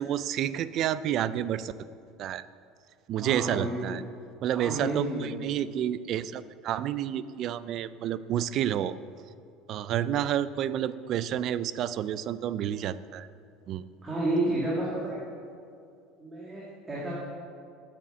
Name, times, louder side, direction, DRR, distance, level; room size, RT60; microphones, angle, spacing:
voice 1, 0.0-1.7 2.2-2.4 3.1-4.0 4.4-8.9 9.7-13.3 13.7-13.8, right 10 dB, 40° right, 15 dB, 0.4 m, -30 dB
voice 2, 3.2-4.0 4.5-5.4 14.0-15.2 16.2-17.1, right 1 dB, 15° right, -7 dB, 2.1 m, -31 dB
9.3 x 8.9 x 6.9 m, 2.4 s
cardioid pair, 165°, 0 cm